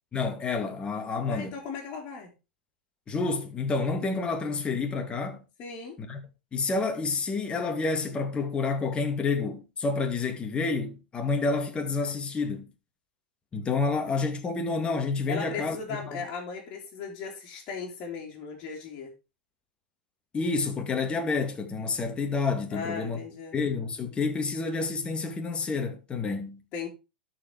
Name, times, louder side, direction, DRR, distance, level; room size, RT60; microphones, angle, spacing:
voice 1, 0.1-1.5 3.1-5.4 6.0-6.2 6.5-12.7 13.5-15.8 16.1-16.2 20.3-23.2 23.5-26.6, left 4 dB, 20° left, 2.0 m, -29 dB
voice 2, 1.3-2.3 5.6-6.0 15.3-19.1 22.7-23.5 26.7-26.9, left 5 dB, 40° left, 3.0 m, -37 dB
12.5 x 4.8 x 4.6 m
hypercardioid pair, 105°, 5 cm